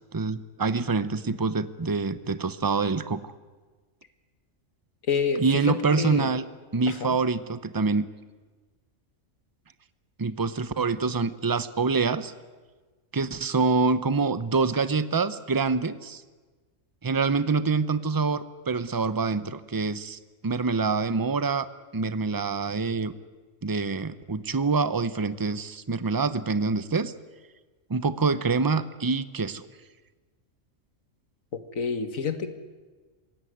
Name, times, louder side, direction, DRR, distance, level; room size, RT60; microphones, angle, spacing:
voice 1, 0.0-3.3 5.4-6.4 6.7-8.1 10.2-12.3 13.1-16.2 17.0-21.7 21.9-23.1 23.6-27.1 27.9-29.6, right 4 dB, 20° right, 14 dB, 0.7 m, -26 dB
voice 2, 5.1-6.3 6.9-7.2 31.5-32.5, left 5 dB, 90° left, 9 dB, 2.1 m, -28 dB
27.5 x 16.5 x 9.5 m, 1.4 s
omnidirectional pair, 1.4 m